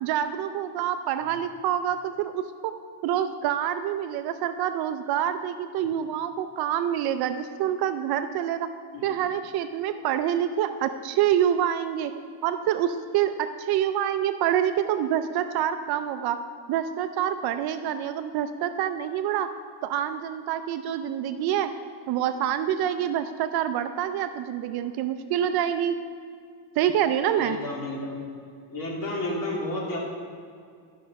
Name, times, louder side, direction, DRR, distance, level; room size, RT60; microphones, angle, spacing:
voice 1, 0.0-2.7 3.0-8.7 9.0-12.1 12.4-16.4 16.7-19.5 19.8-21.7 22.1-26.0 26.8-27.6, right 10 dB, 55° right, 9 dB, 0.5 m, -26 dB
voice 2, 27.4-28.3 28.7-30.0, left 1 dB, 40° left, -3 dB, 2.7 m, -31 dB
13.0 x 5.4 x 5.7 m, 2.3 s
cardioid pair, 150°, 47 cm